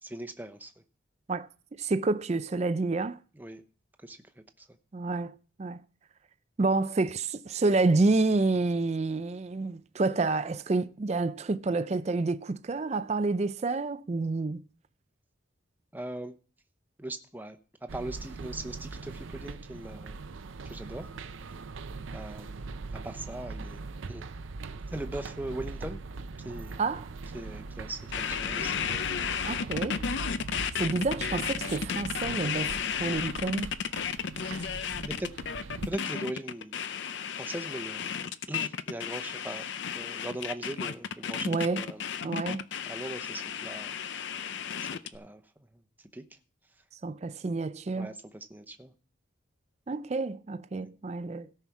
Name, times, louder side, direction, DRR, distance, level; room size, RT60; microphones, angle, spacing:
voice 1, 0.0-0.8 3.3-3.6 4.0-4.7 15.9-16.3 17.0-20.2 20.7-21.2 22.1-22.5 22.9-23.8 24.1-24.3 24.9-26.0 26.4-26.8 27.3-28.9 34.8-35.3 35.9-36.8 37.4-38.2 38.5-39.7 39.9-42.0 42.9-44.0 44.8-45.4 46.0-46.2 47.9-48.9 50.7-50.9, right 1 dB, 10° right, 0.7 m, -40 dB
voice 2, 1.3-3.2 4.9-5.8 6.6-14.6 26.8-27.1 29.4-30.1 30.8-33.7 41.5-41.8 42.2-42.7 47.0-48.1 49.9-51.5, right 3 dB, 35° right, 0.4 m, -29 dB
sound 1, 17.9-35.9, right 3 dB, 80° right, 0.6 m, -41 dB
sound 2, 28.1-45.2, left 7 dB, 65° left, 0.5 m, -33 dB
17.0 x 5.7 x 4.7 m
head